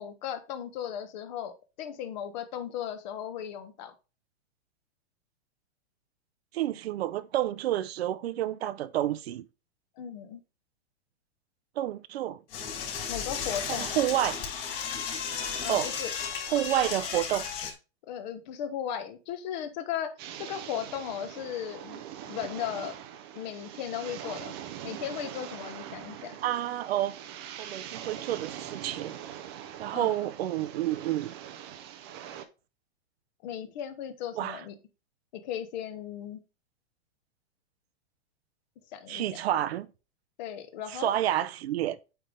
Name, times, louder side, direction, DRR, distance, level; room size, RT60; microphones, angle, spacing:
voice 1, 0.0-3.9 10.0-10.4 13.1-14.0 15.6-16.1 18.1-20.1 20.4-22.0 22.3-23.0 23.3-24.5 24.8-26.4 29.9-30.3 33.4-34.7 35.3-36.4 38.9-39.2 40.4-41.1, left 9 dB, 40° left, 1.0 m, -36 dB
voice 2, 6.5-9.5 11.8-12.4 13.8-14.4 15.7-15.9 16.5-17.5 26.4-27.1 27.6-29.1 29.8-31.3 34.4-34.6 39.1-39.9 40.9-42.0, right 12 dB, 65° right, 0.6 m, -29 dB
Door / Toilet flush, 12.5-17.7, left 6 dB, 60° left, 3.7 m, -34 dB
sound 1, 20.2-32.5, right 10 dB, 25° right, 0.4 m, -42 dB
8.8 x 3.5 x 3.6 m
supercardioid pair, 160°, 33 cm